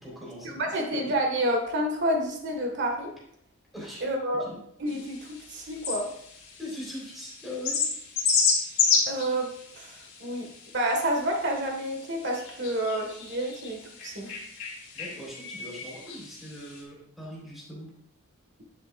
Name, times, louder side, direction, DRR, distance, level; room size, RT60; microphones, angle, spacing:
voice 1, 0.0-0.6 0.9-1.1 3.7-4.6 6.6-7.8 14.9-17.9, left 1 dB, ahead, -5 dB, 3.9 m, -41 dB
voice 2, 0.7-3.1 4.0-4.4 4.8-6.1 9.1-9.5 9.7-10.5 10.7-14.3, right 1 dB, 55° right, 1 dB, 1.9 m, -29 dB
sound 1, 4.9-16.8, left 5 dB, 65° left, 2.8 m, -32 dB
10.5 x 8.3 x 2.6 m, 0.72 s
head